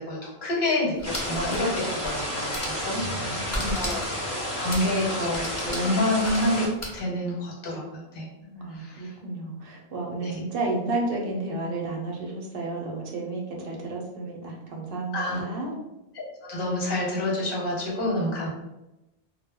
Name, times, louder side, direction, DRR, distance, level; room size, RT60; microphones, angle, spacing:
voice 1, 0.0-4.0 4.3-6.6 6.9-8.3 8.7-9.1 10.2-10.4 15.1-15.4 16.4-18.5, left 1 dB, 60° left, -4 dB, 1.1 m, -28 dB
sound 1, 1.0-2.2 2.5-2.8 3.5-4.2 4.7-5.0 5.3-7.0, equal, 25° left, 0.3 m, -35 dB
sound 2, 1.0-6.7, equal, 20° right, 0.8 m, -31 dB
voice 2, 2.9-3.9 8.4-15.7, right 2 dB, 65° right, 0 dB, 0.8 m, -32 dB
2.1 x 2.1 x 3.5 m, 0.97 s
omnidirectional pair, 1.1 m